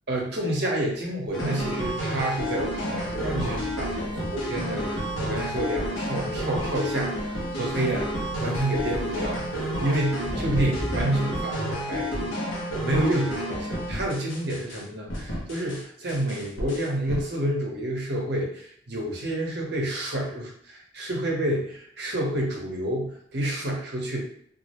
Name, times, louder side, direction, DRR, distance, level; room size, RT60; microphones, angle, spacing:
voice 1, 0.1-8.1 8.4-12.3 12.6-24.2, right 1 dB, 55° right, -2 dB, 0.7 m, -29 dB
sound 1, 1.3-14.8 15.1-15.8 16.1-17.2, equal, 80° left, 0.7 m, -30 dB
Thunder, 1.5-11.0, equal, 5° left, 0.4 m, -38 dB
2.3 x 2.0 x 2.8 m, 0.64 s
head